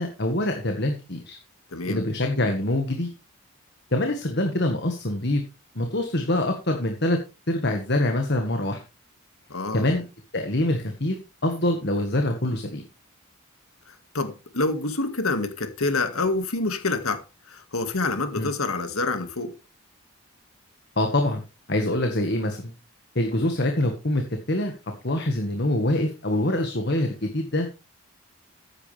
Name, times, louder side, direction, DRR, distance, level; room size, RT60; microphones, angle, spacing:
voice 1, 0.0-1.4 1.9-3.1 3.9-5.4 5.7-7.2 7.5-8.8 9.7-10.0 10.3-11.2 11.4-12.8 18.3-18.5 21.0-21.4 21.7-22.7 23.1-24.7 25.0-27.7, left 1 dB, 50° left, 1.7 m, -25 dB
voice 2, 1.7-2.0 9.5-9.9 13.9-19.5, left 3 dB, 90° left, 2.0 m, -27 dB
14.0 x 9.8 x 3.4 m
head